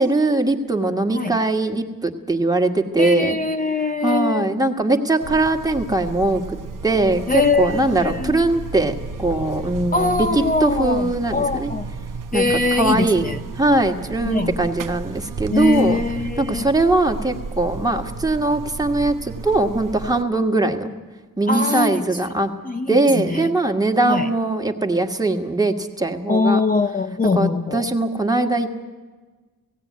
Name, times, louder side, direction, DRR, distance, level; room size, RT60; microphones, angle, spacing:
voice 1, 0.0-3.4 4.0-6.6 6.8-11.7 12.3-13.2 13.5-16.0 16.4-20.9 21.4-22.5 22.9-26.6 27.3-28.8, right 2 dB, 10° right, 1.6 m, -21 dB
voice 2, 3.0-4.5 7.3-8.4 9.9-11.9 12.3-13.4 14.3-14.6 15.5-16.7 21.5-22.0 22.6-23.5 24.0-24.3 26.3-27.9, left 3 dB, 25° left, 0.6 m, -22 dB
Buzz, 5.2-20.2, right 4 dB, 60° right, 0.7 m, -33 dB
16.5 x 16.5 x 9.5 m
wide cardioid pair, 95°, 36 cm